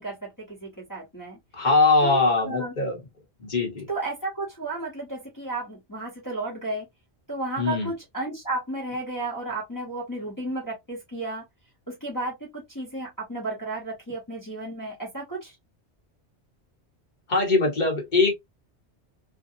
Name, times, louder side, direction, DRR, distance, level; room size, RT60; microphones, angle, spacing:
voice 1, 0.0-1.4 2.0-2.7 3.9-6.9 7.3-11.4 11.9-15.6, right 2 dB, 20° left, 1.0 m, -33 dB
voice 2, 1.5-3.0 3.4-3.9 7.6-7.9 17.3-18.3, left 3 dB, 45° left, 1.2 m, -22 dB
2.6 x 2.2 x 2.6 m
omnidirectional pair, 1.1 m